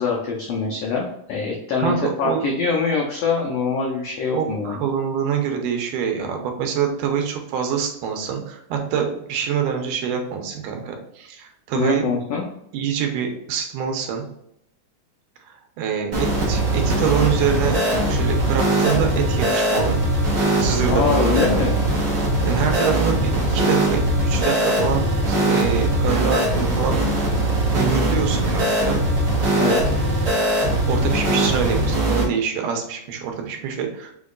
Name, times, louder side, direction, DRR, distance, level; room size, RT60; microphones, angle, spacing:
voice 1, 0.0-1.9 2.2-4.8 11.7-12.5 20.9-21.8 29.6-29.8, left 5 dB, 85° left, -1 dB, 1.4 m, -23 dB
voice 2, 1.8-2.5 4.3-12.0 12.7-14.3 15.5-17.8 18.1-20.0 20.6-21.7 22.4-27.3 27.7-29.0 30.9-34.1, right 7 dB, 90° right, 3 dB, 2.3 m, -25 dB
sound 1, 16.1-32.2, right 1 dB, 50° right, 1.2 m, -20 dB
6.2 x 2.9 x 2.4 m, 0.75 s
omnidirectional pair, 3.7 m